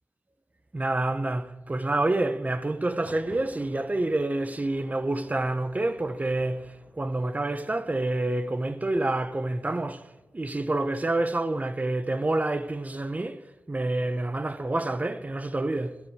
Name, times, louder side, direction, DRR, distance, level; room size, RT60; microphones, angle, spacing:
voice 1, 0.7-10.1 10.3-13.4 13.7-16.0, right 2 dB, 35° right, 1.0 m, -28 dB
Thunder, 2.8-10.5, left 1 dB, 15° left, 6.5 m, -54 dB
15.0 x 11.5 x 6.6 m
wide cardioid pair, 70°, 5 cm